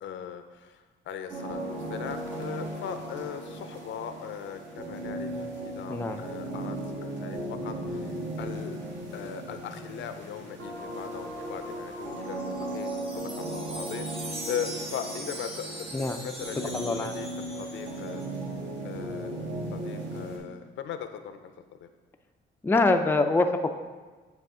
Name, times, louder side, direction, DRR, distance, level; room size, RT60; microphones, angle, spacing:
voice 1, 0.0-8.8 9.1-14.1 14.4-18.2 18.8-19.4 19.7-21.9, left 8 dB, 70° left, 9 dB, 0.5 m, -39 dB
sound 1, 1.3-20.4, right 1 dB, 65° right, 1.6 m, -37 dB
Wind chime, 12.1-18.3, right 1 dB, 25° right, 1.4 m, -41 dB
voice 2, 16.7-17.1 22.6-23.7, left 3 dB, 10° left, 6 dB, 0.4 m, -24 dB
9.1 x 3.5 x 3.7 m, 1.3 s
cardioid pair, 90°, 20 cm